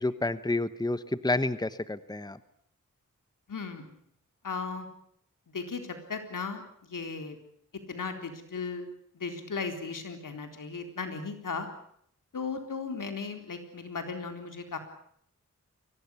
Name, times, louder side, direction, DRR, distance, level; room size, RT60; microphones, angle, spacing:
voice 1, 0.0-2.4, left 2 dB, 15° left, 14 dB, 1.2 m, -29 dB
voice 2, 3.5-3.9 4.4-4.9 5.5-7.4 7.9-8.9 9.1-11.7 12.3-14.8, left 4 dB, 85° left, 6 dB, 4.0 m, -36 dB
24.0 x 18.0 x 9.8 m, 0.67 s
cardioid pair, 55°, 31 cm